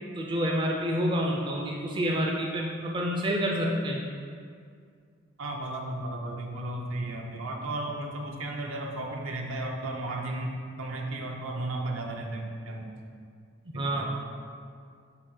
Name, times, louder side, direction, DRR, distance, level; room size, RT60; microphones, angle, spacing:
voice 1, 0.2-4.0 13.7-14.1, equal, 20° right, -1 dB, 0.4 m, -28 dB
voice 2, 5.4-12.9 13.8-14.1, right 2 dB, 70° right, 1 dB, 0.7 m, -34 dB
6.5 x 2.8 x 5.3 m, 2.2 s
head